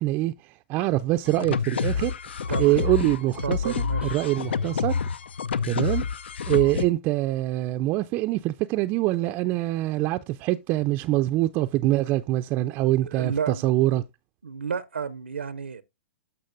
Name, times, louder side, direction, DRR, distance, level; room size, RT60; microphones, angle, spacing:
voice 1, 0.0-2.1 2.6-3.8 4.1-5.0 5.6-6.0 6.5-14.0, right 16 dB, 35° right, 0.4 m, -24 dB
sound 1, 1.3-6.9, left 6 dB, 75° left, 0.5 m, -28 dB
voice 2, 2.5-2.8 3.4-4.2 13.0-13.6 14.4-15.8, right 6 dB, 90° right, 0.6 m, -31 dB
13.5 x 5.2 x 2.6 m
hypercardioid pair, 120°, 6 cm